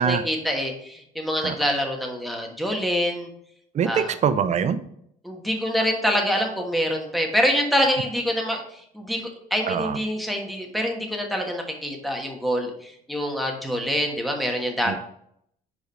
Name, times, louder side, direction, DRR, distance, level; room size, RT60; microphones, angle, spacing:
voice 1, 0.0-3.3 3.8-4.1 5.2-15.0, equal, ahead, 1 dB, 1.3 m, -26 dB
voice 2, 3.7-4.8 9.7-10.0 14.9-15.0, right 7 dB, 45° right, 11 dB, 0.5 m, -23 dB
5.0 x 4.8 x 4.2 m, 0.71 s
cardioid pair, 110°, 17 cm